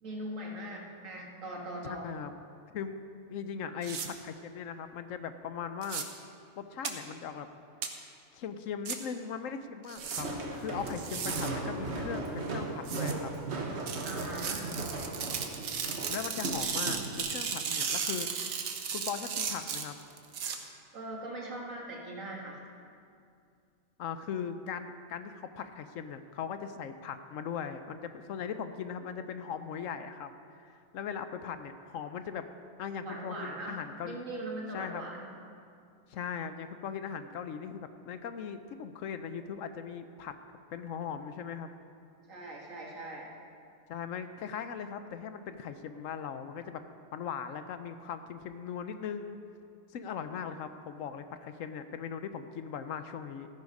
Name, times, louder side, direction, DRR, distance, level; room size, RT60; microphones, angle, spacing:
voice 1, 0.0-2.1 14.0-14.7 20.9-22.6 33.0-35.3 42.3-43.3, right 1 dB, 70° right, -2 dB, 2.1 m, -40 dB
voice 2, 1.8-2.3 2.7-3.0 3.3-6.1 6.6-7.5 8.3-10.3 10.6-13.3 16.1-18.3 18.9-20.0 24.0-30.3 30.6-32.5 32.8-34.2 34.7-35.0 36.1-40.3 40.7-41.7 43.9-46.8 47.1-49.4 49.9-53.5, left 7 dB, 75° left, 10 dB, 1.0 m, -39 dB
sound 1, 3.8-4.1 5.8-6.0 6.8-6.9 7.8-7.9 8.8-9.0 9.9-10.2 10.9-11.5 12.8-13.1 13.9-20.6, right 6 dB, 90° right, 1.4 m, -35 dB
Walk footsteps, 10.0-17.2, right 2 dB, 55° right, 1.4 m, -37 dB
14.0 x 9.6 x 5.3 m, 2.4 s
omnidirectional pair, 1.4 m